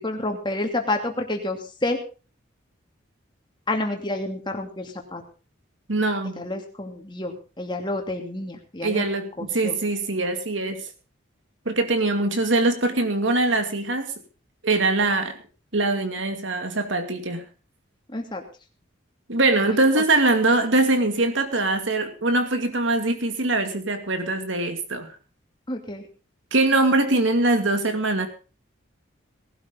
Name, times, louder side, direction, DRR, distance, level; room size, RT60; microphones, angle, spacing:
voice 1, 0.0-2.0 3.7-5.2 6.4-9.0 9.4-9.8 18.1-18.4 20.0-20.1 25.7-26.1, left 2 dB, 25° left, 3 dB, 2.6 m, -29 dB
voice 2, 5.9-6.4 8.8-10.8 11.7-14.1 14.6-15.3 15.7-17.4 19.3-25.1 26.5-28.3, right 2 dB, 70° right, 7 dB, 2.4 m, -22 dB
19.0 x 12.0 x 3.8 m, 0.34 s
head